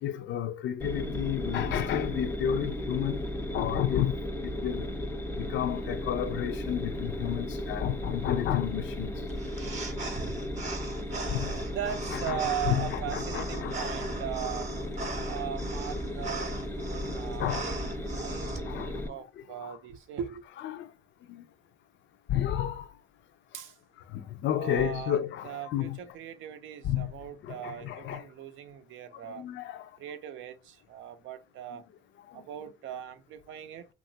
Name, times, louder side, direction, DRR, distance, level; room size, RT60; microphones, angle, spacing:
voice 1, 0.0-3.3 3.5-4.2 4.4-4.9 5.4-9.1 11.3-11.5 12.3-12.4 12.7-12.9 13.1-13.8 17.0-17.1 17.4-17.7 18.7-19.0 19.6-19.7 20.6-20.9 21.3-21.4 22.3-22.9 24.1-26.0 26.8-27.1 27.4-28.2 29.4-29.9 32.3-32.4, left 11 dB, 70° left, 0.4 m, -31 dB
sound 1, 0.8-19.1, left 1 dB, 10° left, 0.5 m, -35 dB
sound 2, 9.3-18.6, right 3 dB, 35° right, 0.8 m, -39 dB
voice 2, 11.7-14.7 15.3-20.4 23.5-23.7 24.6-29.4 30.0-31.8 32.3-33.9, right 9 dB, 80° right, 0.5 m, -39 dB
2.9 x 2.3 x 2.6 m
cardioid pair, 90°, 20 cm